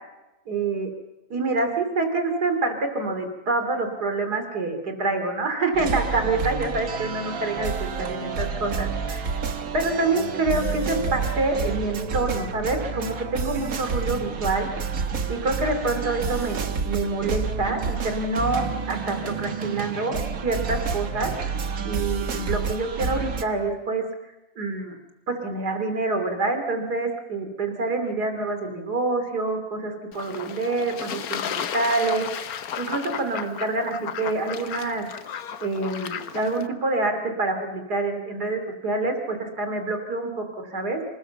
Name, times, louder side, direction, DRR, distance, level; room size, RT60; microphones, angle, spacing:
voice 1, 0.5-0.9 1.3-9.4 9.7-14.7 15.3-21.3 21.9-24.1 24.6-25.0 25.3-32.5 32.8-35.1 35.6-41.0, right 3 dB, 85° right, 7 dB, 3.5 m, -27 dB
sound 1, 5.7-23.4, right 5 dB, 60° right, 1.7 m, -29 dB
Fowl / Bird / Water, 30.1-36.7, left 8 dB, 70° left, 1.4 m, -34 dB
27.0 x 19.5 x 7.0 m, 1.0 s
omnidirectional pair, 1.7 m